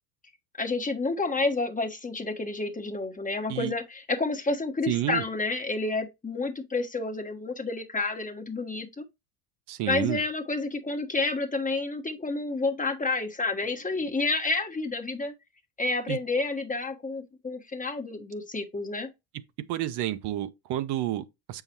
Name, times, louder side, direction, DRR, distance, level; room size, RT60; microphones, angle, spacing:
voice 1, 0.6-9.0 9.9-15.3 15.8-19.1, left 3 dB, 15° left, 1.3 m, -29 dB
voice 2, 4.9-5.2 9.7-10.2 16.1-16.2 19.7-21.6, right 13 dB, 55° right, 0.9 m, -30 dB
7.8 x 5.8 x 2.9 m
hypercardioid pair, 80°, 49 cm